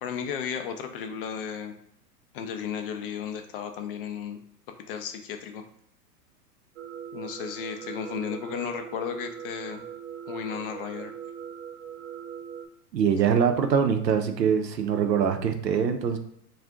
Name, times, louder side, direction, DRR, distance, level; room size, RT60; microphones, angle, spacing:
voice 1, 0.0-1.8 2.3-4.4 4.9-5.6 7.1-9.8 10.3-11.1, left 7 dB, 40° left, 5 dB, 0.4 m, -34 dB
sound 1, 6.8-12.7, right 8 dB, 40° right, 0.6 m, -40 dB
voice 2, 12.9-16.2, right 7 dB, 85° right, 7 dB, 0.6 m, -23 dB
2.5 x 2.3 x 3.5 m, 0.73 s
hypercardioid pair, 105°, 49 cm